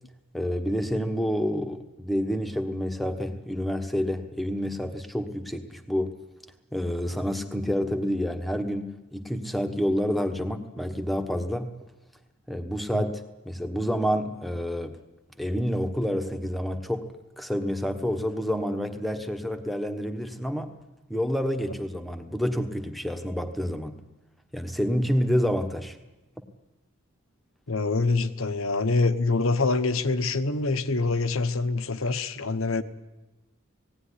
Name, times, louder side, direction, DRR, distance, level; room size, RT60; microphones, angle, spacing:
voice 1, 0.3-6.1 6.7-11.7 12.5-15.0 15.4-17.1 17.4-20.7 21.1-24.0 24.5-26.0, equal, ahead, 6 dB, 1.2 m, -28 dB
voice 2, 27.7-32.8, left 3 dB, 75° left, 11 dB, 1.1 m, -25 dB
18.0 x 17.0 x 10.0 m, 1.1 s
head